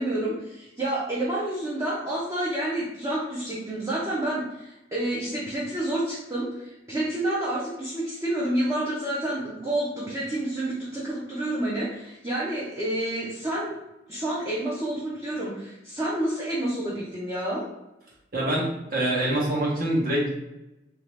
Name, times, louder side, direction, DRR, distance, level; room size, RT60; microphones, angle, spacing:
voice 1, 0.0-13.7 14.1-17.6, right 1 dB, 15° right, -7 dB, 0.6 m, -29 dB
voice 2, 18.3-20.4, right 1 dB, 50° right, -4 dB, 1.1 m, -25 dB
3.0 x 2.7 x 3.3 m, 0.95 s
head